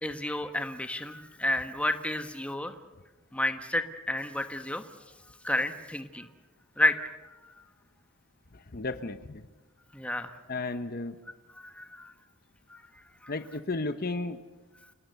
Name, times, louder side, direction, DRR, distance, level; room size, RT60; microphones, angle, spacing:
voice 1, 0.0-2.7 3.3-4.8 5.4-6.3 6.8-7.6 9.9-10.3 11.6-12.1 12.7-12.8 13.2-13.3, left 1 dB, 5° left, 7 dB, 1.2 m, -31 dB
voice 2, 8.5-9.5 10.5-11.2 13.3-14.4, left 3 dB, 45° left, 10 dB, 0.9 m, -34 dB
28.0 x 19.0 x 6.9 m, 1.2 s
head